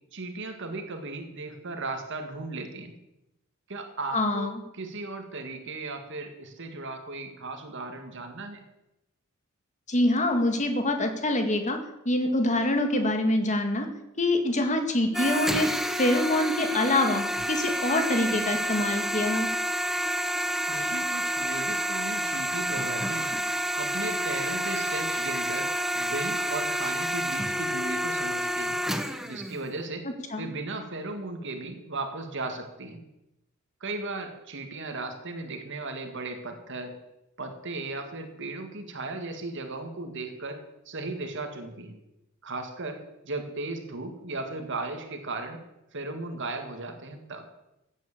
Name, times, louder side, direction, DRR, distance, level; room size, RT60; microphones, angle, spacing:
voice 1, 0.1-2.9 3.7-8.6 20.7-23.3 23.8-28.8 29.3-30.1 30.4-33.0 33.8-36.9 37.4-42.0 42.4-45.6 45.9-47.5, right 3 dB, 60° right, 6 dB, 1.9 m, -36 dB
voice 2, 4.1-4.5 9.9-11.8 12.1-13.9 14.2-15.7 16.0-19.5 30.0-30.5, left 1 dB, 35° left, 6 dB, 2.1 m, -25 dB
sound 1, 15.1-29.6, equal, ahead, 0.9 m, -29 dB
15.5 x 9.3 x 7.4 m, 0.91 s
head